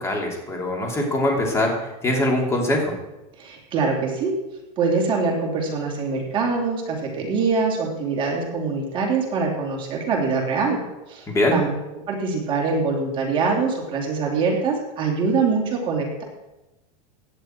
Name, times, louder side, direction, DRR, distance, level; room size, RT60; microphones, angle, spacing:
voice 1, 0.0-1.7 2.0-2.9 11.3-11.6, left 1 dB, 15° left, 0 dB, 3.0 m, -22 dB
voice 2, 3.4-4.3 4.8-10.8 11.1-11.2 11.5-11.7 12.1-16.2, right 4 dB, 25° right, -1 dB, 3.2 m, -23 dB
17.0 x 10.5 x 4.6 m, 1.0 s
supercardioid pair, 160°, 19 cm